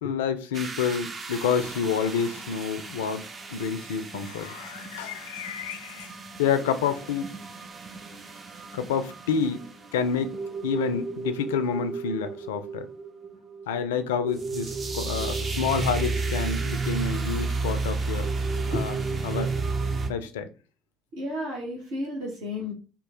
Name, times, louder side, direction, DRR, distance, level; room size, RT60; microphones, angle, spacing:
voice 1, 0.0-3.2 3.5-6.1 6.4-7.3 8.7-9.7 9.9-10.3 10.6-12.9 13.7-18.3 18.5-18.9 19.2-19.5 20.1-20.5, left 7 dB, 70° left, 0.3 m, -28 dB
sound 1, 0.5-20.1, right 4 dB, 35° right, 0.6 m, -32 dB
voice 2, 21.1-22.7, left 1 dB, 65° right, 1.0 m, -32 dB
3.0 x 2.3 x 3.6 m
figure-of-eight pair, 55°, 0 cm